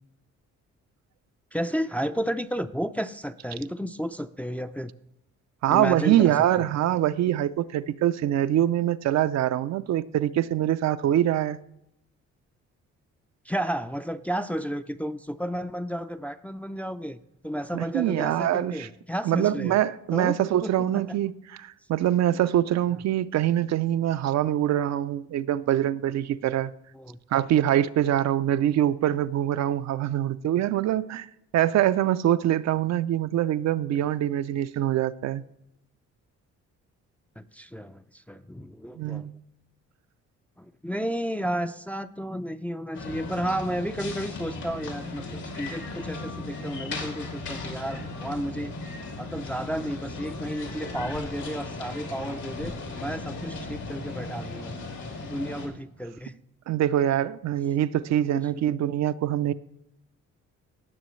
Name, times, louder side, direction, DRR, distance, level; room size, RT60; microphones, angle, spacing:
voice 1, 1.5-4.9 5.7-6.6 13.5-17.2 17.4-19.8 20.1-21.2 26.9-27.2 37.4-39.3 40.6-48.7 49.2-54.7 55.2-56.3, equal, 5° left, 0.4 m, -32 dB
voice 2, 5.6-11.6 17.7-18.9 19.3-21.3 21.6-26.7 27.3-31.3 31.5-35.4 39.0-39.3 56.7-59.5, right 12 dB, 65° right, 0.5 m, -24 dB
sound 1, 42.9-55.7, left 3 dB, 80° left, 2.6 m, -36 dB
17.0 x 6.8 x 3.1 m
cardioid pair, 90°, 30 cm